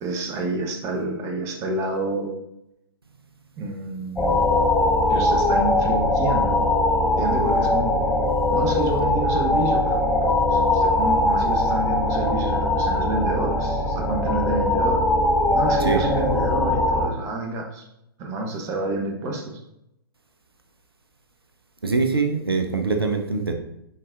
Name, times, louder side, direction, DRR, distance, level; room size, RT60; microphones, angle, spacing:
voice 1, 0.0-2.4 3.6-4.4 5.1-6.6 7.2-8.0 8.5-15.0 15.5-17.9 18.2-19.6, right 2 dB, 25° right, 3 dB, 1.0 m, -28 dB
sound 1, 4.2-17.1, left 2 dB, 5° left, 0.5 m, -21 dB
voice 2, 21.8-23.5, right 4 dB, 80° right, 5 dB, 0.8 m, -23 dB
9.5 x 4.0 x 2.5 m, 0.82 s
figure-of-eight pair, 115°, 12 cm